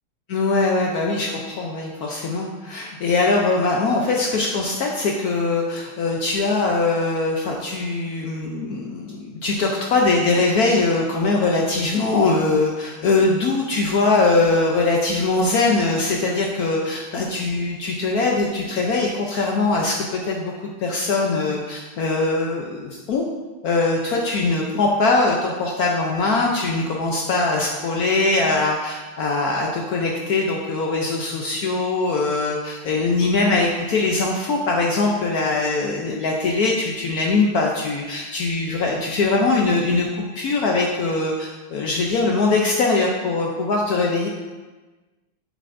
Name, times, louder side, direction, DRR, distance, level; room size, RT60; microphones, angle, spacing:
voice 1, 0.3-23.2 23.6-44.3, left 3 dB, 70° left, -1 dB, 0.9 m, -21 dB
7.5 x 6.6 x 2.6 m, 1.3 s
omnidirectional pair, 2.3 m